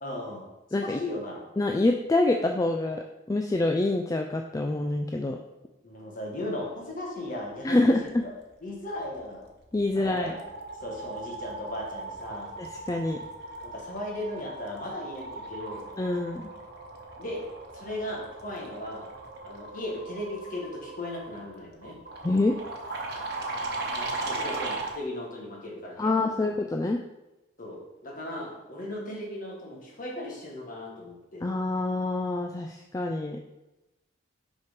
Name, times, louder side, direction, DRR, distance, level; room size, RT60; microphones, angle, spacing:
voice 1, 0.0-0.5 0.8-1.4 5.8-8.3 8.6-9.5 9.9-10.4 10.8-12.5 13.6-15.9 17.2-17.5 17.7-19.1 19.4-22.0 23.9-26.5 27.6-31.4, left 1 dB, 40° left, -1 dB, 1.5 m, -37 dB
voice 2, 1.6-3.0 3.3-5.4 7.6-8.0 9.7-10.3 12.6-13.2 16.0-16.5 22.2-22.6 26.0-27.0 31.4-33.4, left 2 dB, 15° left, 3 dB, 0.3 m, -26 dB
sound 1, 9.2-9.5 9.8-25.0, right 3 dB, 55° right, 1.1 m, -38 dB
5.7 x 4.6 x 5.2 m, 0.99 s
head